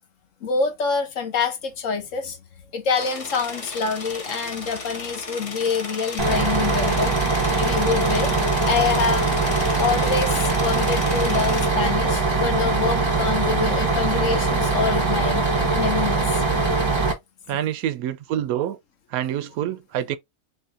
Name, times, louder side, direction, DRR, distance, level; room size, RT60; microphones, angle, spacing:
voice 1, 0.4-2.4 2.7-8.3 8.6-9.3 9.8-15.4 15.7-16.2, left 5 dB, 65° left, 1.2 m, -26 dB
sound 1, 3.0-11.7, left 4 dB, 40° left, 0.5 m, -34 dB
Bus, 6.2-17.1, right 3 dB, 25° right, 0.8 m, -22 dB
voice 2, 17.5-18.8 19.1-20.2, right 11 dB, 85° right, 1.0 m, -26 dB
3.9 x 2.7 x 3.3 m
omnidirectional pair, 1.5 m